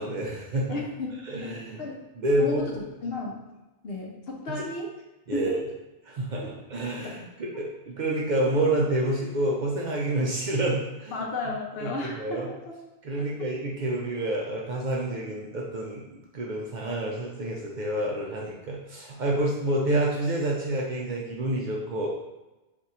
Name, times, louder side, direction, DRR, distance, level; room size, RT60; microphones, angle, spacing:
voice 1, 0.0-0.8 1.3-1.8 2.2-2.6 5.3-5.6 6.1-11.1 11.8-12.5 13.0-16.0 16.3-22.1, right 1 dB, 55° right, -3 dB, 0.5 m, -28 dB
voice 2, 0.7-1.1 1.4-2.0 2.4-3.4 3.8-4.9 5.3-5.6 6.4-6.5 11.1-12.8 13.4-13.5, left 2 dB, 70° left, -1 dB, 0.8 m, -34 dB
2.6 x 2.4 x 4.1 m, 1.1 s
omnidirectional pair, 1.1 m